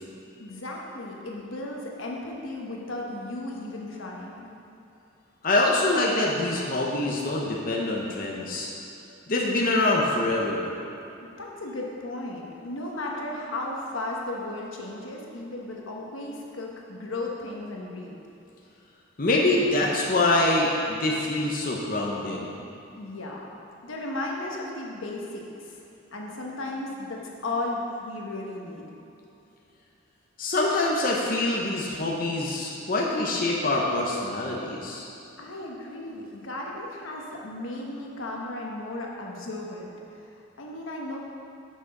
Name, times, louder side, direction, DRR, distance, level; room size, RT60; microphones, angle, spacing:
voice 1, 0.4-4.5 11.2-18.2 22.9-23.5 23.8-25.8 26.1-29.0 35.4-39.9 40.6-41.2, left 2 dB, 90° left, -1 dB, 1.1 m, -35 dB
voice 2, 5.4-8.7 9.3-10.7 19.2-22.5 30.4-35.1, left 2 dB, 45° left, -2 dB, 0.7 m, -25 dB
6.2 x 6.0 x 5.3 m, 2.8 s
head